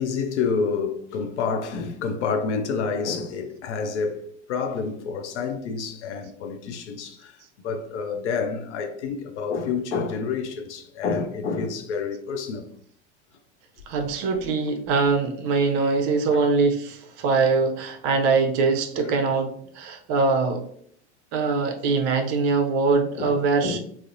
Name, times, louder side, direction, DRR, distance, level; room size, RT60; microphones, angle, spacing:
voice 1, 0.0-7.4 7.6-12.7 16.3-16.4 23.2-23.8, left 5 dB, 75° left, 0.5 m, -28 dB
voice 2, 13.9-20.6 21.3-23.8, right 4 dB, 45° right, 0.5 m, -23 dB
2.6 x 2.0 x 2.5 m
hypercardioid pair, 80°, 36 cm